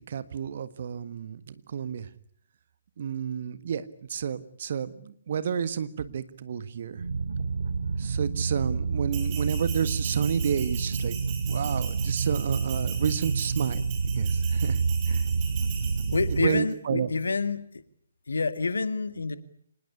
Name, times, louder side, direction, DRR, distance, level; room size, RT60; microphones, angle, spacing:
voice 1, 0.0-2.1 3.0-7.0 8.0-11.2 11.5-13.8 14.1-15.2 16.0-16.1 16.4-17.1, right 7 dB, 50° right, 14 dB, 1.6 m, -30 dB
sound 1, 7.0-16.5, right 5 dB, 65° right, 1.9 m, -28 dB
Bell, 9.1-16.5, right 7 dB, 25° right, 5.5 m, -41 dB
voice 2, 16.1-17.7 18.3-19.4, left 4 dB, 65° left, 13 dB, 2.0 m, -28 dB
26.0 x 20.0 x 10.0 m, 0.67 s
figure-of-eight pair, 135°, 0 cm